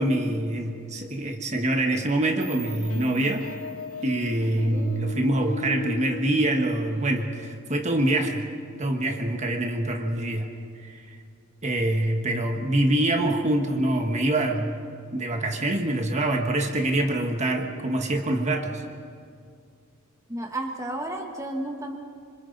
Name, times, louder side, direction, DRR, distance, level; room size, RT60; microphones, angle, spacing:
voice 1, 0.0-3.4 4.0-8.5 8.8-10.5 10.8-11.0 11.6-14.8 15.1-18.8, right 1 dB, 35° right, 3 dB, 1.5 m, -25 dB
sound 1, 2.4-7.6, left 5 dB, 75° left, 0.8 m, -38 dB
sound 2, 2.4-5.3, right 10 dB, 60° right, 2.7 m, -48 dB
voice 2, 4.5-5.0 20.3-22.0, right 1 dB, 15° right, 2 dB, 1.4 m, -32 dB
26.5 x 26.0 x 4.1 m, 2.2 s
head